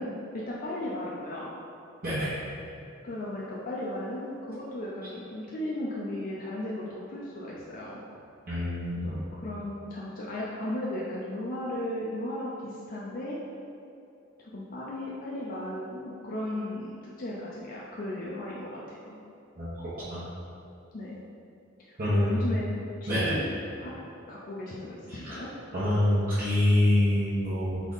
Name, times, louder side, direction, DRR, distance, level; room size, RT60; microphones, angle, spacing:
voice 1, 0.0-1.5 3.0-8.0 8.9-13.4 14.4-19.2 20.9-21.2 21.8-22.6 23.0-23.4 23.8-23.9 24.3-25.5, left 1 dB, 45° left, -5 dB, 0.5 m, -36 dB
voice 2, 2.0-2.3 8.5-9.1 19.6-19.7 20.1-20.2 22.0-22.5 23.1-23.3 25.1-25.3 25.7-27.8, left 1 dB, 45° right, -13 dB, 1.0 m, -26 dB
3.6 x 3.5 x 3.9 m, 2.7 s
head